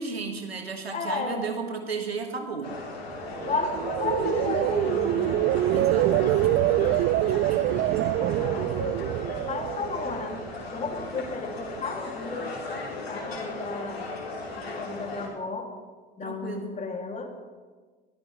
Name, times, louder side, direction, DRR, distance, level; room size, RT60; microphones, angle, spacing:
voice 1, 0.0-2.7 5.7-7.9 16.2-16.8, right 5 dB, 90° right, 5 dB, 1.9 m, -35 dB
voice 2, 0.9-1.5 3.4-5.4 8.3-9.1 9.4-10.4 10.7-12.5 13.1-14.1 14.6-15.7 16.2-17.3, left 3 dB, 25° left, 3 dB, 2.5 m, -33 dB
sound 1, 2.6-15.3, left 3 dB, 85° left, 3.2 m, -36 dB
sound 2, 3.3-10.5 10.9-11.3, right 13 dB, 40° right, 0.5 m, -25 dB
22.5 x 16.0 x 3.2 m, 1.4 s
figure-of-eight pair, 75°, 30 cm